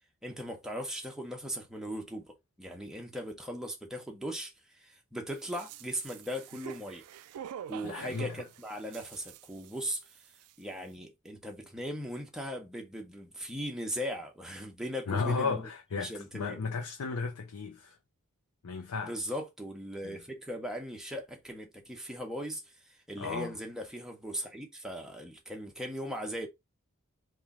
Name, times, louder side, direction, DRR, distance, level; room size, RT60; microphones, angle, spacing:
voice 1, 0.2-7.0 7.7-10.0 10.6-15.7 15.9-16.6 19.0-26.5, equal, ahead, 0.7 m, -39 dB
sound 1, 5.3-10.2 10.4-10.5, right 9 dB, 85° right, 0.3 m, -47 dB
voice 2, 7.8-8.4 15.1-18.0 18.6-19.3 20.0-20.2 23.2-23.5, left 4 dB, 80° left, 0.5 m, -34 dB
3.1 x 2.2 x 3.7 m
head